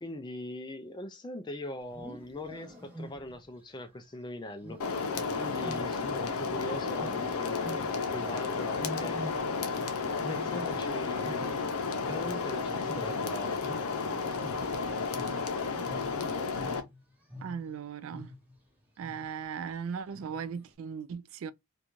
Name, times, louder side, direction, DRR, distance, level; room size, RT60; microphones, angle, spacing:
voice 1, 0.0-4.8 5.4-9.2 10.3-11.5 12.1-13.6, left 1 dB, 20° left, 0.3 m, -41 dB
Wild animals, 1.8-3.5 4.6-6.5 6.9-8.1 8.7-9.8 10.1-12.6 12.8-17.7 18.1-18.6 19.0-19.4 20.1-20.6, equal, 10° right, 0.7 m, -45 dB
sound 1, 4.8-16.8, left 4 dB, 85° left, 0.5 m, -32 dB
voice 2, 17.4-18.3 19.0-21.5, right 6 dB, 65° right, 0.3 m, -38 dB
2.5 x 2.2 x 2.9 m
head